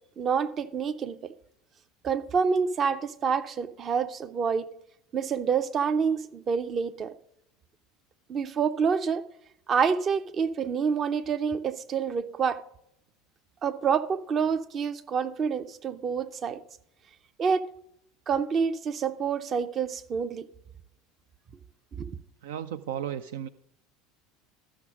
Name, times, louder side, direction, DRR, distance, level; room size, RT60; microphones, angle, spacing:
voice 1, 0.2-1.3 2.0-4.7 5.1-7.1 8.3-9.2 9.7-12.6 13.6-16.6 17.4-17.7 18.3-20.5 21.9-22.1, right 6 dB, 35° right, 0.7 m, -27 dB
voice 2, 22.4-23.5, right 10 dB, 65° right, 0.4 m, -34 dB
13.5 x 6.3 x 4.9 m
figure-of-eight pair, 75°, 0 cm